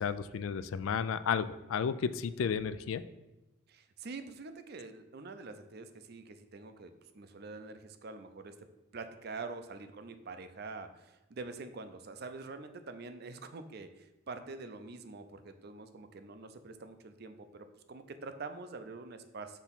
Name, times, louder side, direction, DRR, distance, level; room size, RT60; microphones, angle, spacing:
voice 1, 0.0-3.0, left 6 dB, 75° left, 14 dB, 0.3 m, -32 dB
voice 2, 3.7-8.7 8.9-19.6, right 3 dB, 50° right, 9 dB, 0.5 m, -45 dB
6.0 x 3.5 x 5.7 m, 0.98 s
head